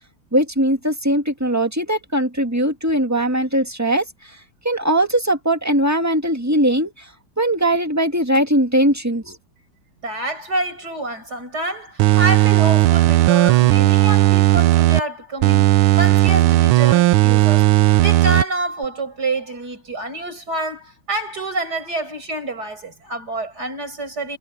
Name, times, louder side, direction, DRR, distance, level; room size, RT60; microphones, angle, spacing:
voice 1, 0.3-4.1 4.6-6.9 7.4-9.4, right 1 dB, 10° right, 1.7 m, -20 dB
voice 2, 10.0-24.4, right 2 dB, 50° right, 7.6 m, -27 dB
sound 1, 12.0-15.0 15.4-18.4 18.8-18.9, right 16 dB, 90° right, 1.5 m, -15 dB
omnidirectional pair, 2.2 m